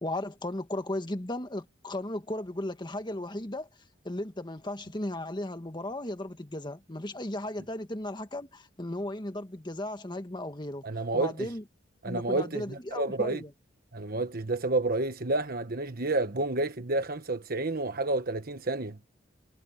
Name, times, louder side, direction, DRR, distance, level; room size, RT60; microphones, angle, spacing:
voice 1, 0.0-3.7 4.0-10.8 11.1-11.6 12.1-13.5, left 1 dB, 25° left, 1.6 m, -35 dB
voice 2, 10.8-11.5 12.0-13.4 13.9-19.0, right 2 dB, 50° right, 1.2 m, -30 dB
head